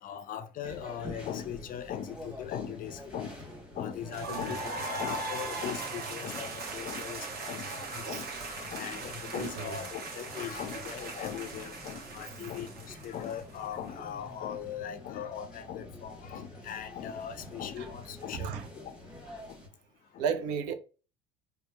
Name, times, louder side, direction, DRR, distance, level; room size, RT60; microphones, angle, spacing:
voice 1, 0.0-3.4 3.8-19.0 19.5-19.6 20.1-20.2, left 9 dB, 40° left, 0.4 m, -39 dB
sound 1, 0.6-19.7, left 1 dB, 5° right, 0.9 m, -48 dB
sound 2, 4.1-13.9, right 3 dB, 50° right, 0.8 m, -39 dB
voice 2, 4.3-4.6 8.1-8.2 9.3-9.7 17.8-17.9 18.4-18.6 20.2-20.7, right 7 dB, 75° right, 0.5 m, -33 dB
2.8 x 2.1 x 2.2 m
hypercardioid pair, 70°, 21 cm